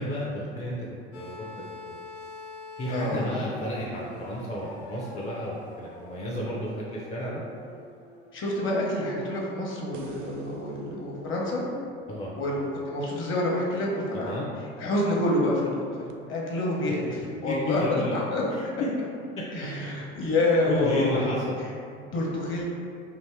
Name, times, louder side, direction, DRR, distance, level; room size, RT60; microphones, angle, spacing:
voice 1, 0.0-2.0 2.8-7.4 12.1-12.3 14.1-14.5 17.4-18.2 18.5-18.6 19.4-19.5 20.7-21.6, left 1 dB, 20° left, -4 dB, 0.4 m, -32 dB
sound 1, 1.1-9.3 10.5-10.6, left 2 dB, 80° left, 0.5 m, -44 dB
voice 2, 2.9-3.3 8.3-11.6 12.4-14.4 14.8-18.7 19.5-21.3 21.9-22.6, left 1 dB, 40° left, -3 dB, 0.9 m, -28 dB
sound 2, 9.9-13.3 16.1-16.2, right 3 dB, 60° right, 0.4 m, -46 dB
2.9 x 2.6 x 3.5 m, 2.3 s
figure-of-eight pair, 65°, 33 cm